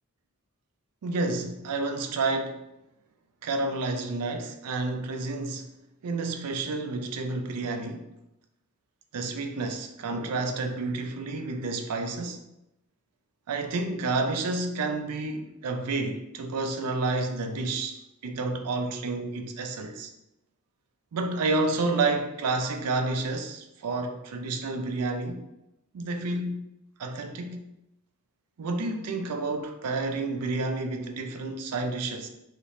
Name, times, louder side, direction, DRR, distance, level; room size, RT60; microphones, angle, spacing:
voice 1, 1.0-2.6 3.4-5.7 6.0-8.1 9.1-12.4 13.5-20.1 21.1-25.4 25.9-26.6 27.0-27.6 28.6-32.3, right 3 dB, 85° right, 0.4 m, -30 dB
3.4 x 2.8 x 2.6 m
head